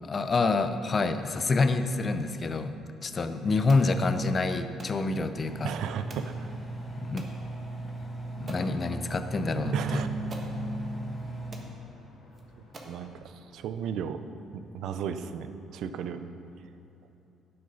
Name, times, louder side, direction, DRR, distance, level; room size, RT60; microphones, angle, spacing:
voice 1, 0.0-2.8 3.0-5.7 7.0-7.3 8.4-10.0, left 3 dB, 30° left, 9 dB, 0.5 m, -27 dB
sound 1, 3.7-3.9 4.8-5.0 6.1-6.3 7.2-7.4 8.0-8.1 8.5-8.7 9.8-9.9 10.3-10.5 11.2-11.3 11.5-11.7 12.3-12.4 12.7-13.0, right 2 dB, 35° right, 1.3 m, -45 dB
Engine, 5.3-11.5, right 2 dB, 5° left, 1.6 m, -38 dB
voice 2, 5.6-6.3 9.7-10.1 12.8-14.2 14.5-16.3, right 8 dB, 70° right, 10 dB, 0.5 m, -34 dB
sound 2, 8.4-13.3, right 2 dB, 85° left, 2.4 m, -38 dB
9.7 x 7.8 x 5.5 m, 2.9 s
cardioid pair, 120°, 0 cm